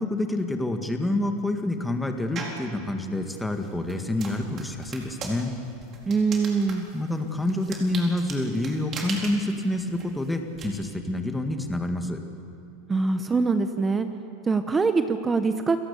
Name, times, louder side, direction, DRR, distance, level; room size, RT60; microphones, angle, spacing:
voice 1, 0.0-5.5 6.9-12.2, left 1 dB, 5° left, 5 dB, 2.0 m, -27 dB
sound 1, 2.4-2.7 3.2-10.7, right 4 dB, 35° right, 4.1 m, -39 dB
voice 2, 6.1-6.9 12.9-14.1 14.4-15.8, right 4 dB, 15° right, 9 dB, 0.9 m, -23 dB
29.5 x 17.5 x 7.1 m, 2.7 s
supercardioid pair, 130°, 0 cm